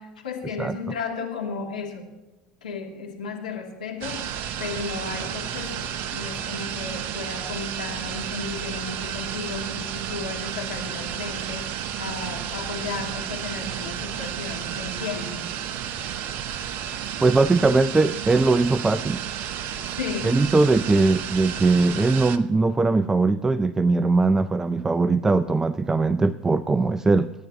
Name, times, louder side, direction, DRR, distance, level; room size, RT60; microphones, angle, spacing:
voice 1, 0.0-2.1 2.6-4.2 4.6-11.7 12.0-15.4 20.0-20.3, left 4 dB, 75° left, 0 dB, 2.7 m, -34 dB
sound 1, 4.0-22.4, right 9 dB, 50° right, 0.8 m, -32 dB
voice 2, 17.2-19.2 20.2-27.3, right 3 dB, 10° right, 16 dB, 0.4 m, -20 dB
24.0 x 10.5 x 2.9 m, 1.1 s
figure-of-eight pair, 80°, 5 cm